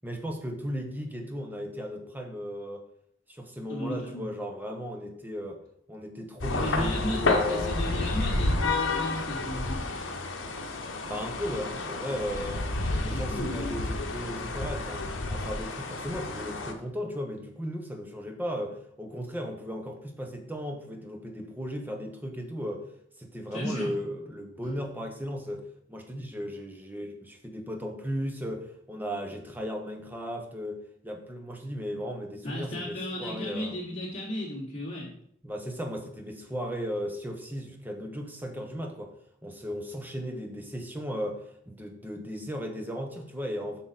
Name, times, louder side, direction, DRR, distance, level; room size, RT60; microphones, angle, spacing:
voice 1, 0.0-2.8 3.3-5.6 5.9-7.8 11.0-12.7 13.0-22.8 23.2-25.6 25.9-33.7 35.4-39.1 39.4-43.8, equal, 10° right, 3 dB, 1.0 m, -36 dB
voice 2, 3.7-4.3 6.5-9.9 13.0-13.8 23.5-23.9 24.6-24.8 32.4-35.1, left 1 dB, 35° left, -7 dB, 3.3 m, -35 dB
sound 1, 6.4-16.7, left 2 dB, 85° left, 0.9 m, -30 dB
7.6 x 5.9 x 4.1 m, 0.68 s
head